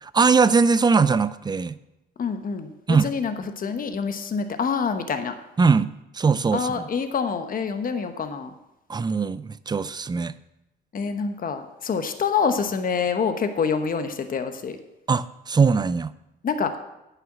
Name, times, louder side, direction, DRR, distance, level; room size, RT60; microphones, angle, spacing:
voice 1, 0.0-1.7 2.9-3.1 5.6-6.8 8.9-10.3 15.1-16.1, right 5 dB, 20° right, 15 dB, 0.5 m, -21 dB
voice 2, 2.2-5.3 6.5-8.5 10.9-14.8 16.4-16.7, left 5 dB, 45° left, 8 dB, 1.0 m, -26 dB
9.3 x 5.8 x 7.2 m, 0.93 s
cardioid pair, 90°, 20 cm